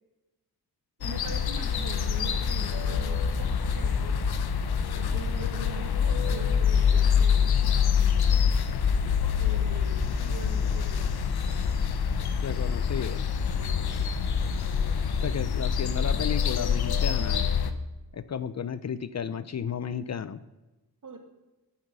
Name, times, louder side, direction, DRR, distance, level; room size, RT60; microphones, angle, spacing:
sound 1, 1.0-17.7, left 7 dB, 85° left, 1.0 m, -26 dB
voice 1, 1.0-4.3 4.9-7.5 9.4-11.0 13.6-14.0 14.4-14.9 21.0-21.2, right 4 dB, 55° right, 5 dB, 2.2 m, -43 dB
voice 2, 12.4-13.2 15.2-17.4 18.1-20.4, left 7 dB, 45° left, 14 dB, 0.5 m, -33 dB
12.0 x 9.6 x 5.5 m, 1.1 s
wide cardioid pair, 170°, 38 cm